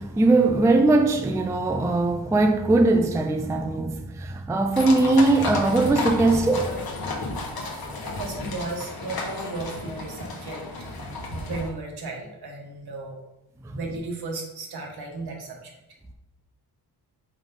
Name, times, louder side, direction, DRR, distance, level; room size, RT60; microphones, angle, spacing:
voice 1, 0.0-6.8, right 2 dB, 10° right, 0.4 m, -20 dB
sound 1, 4.8-11.7, left 2 dB, 60° left, 1.3 m, -32 dB
voice 2, 8.0-10.6 11.3-13.2 13.7-15.7, right 3 dB, 70° right, 1.5 m, -35 dB
5.2 x 5.0 x 3.8 m
wide cardioid pair, 135°, 40 cm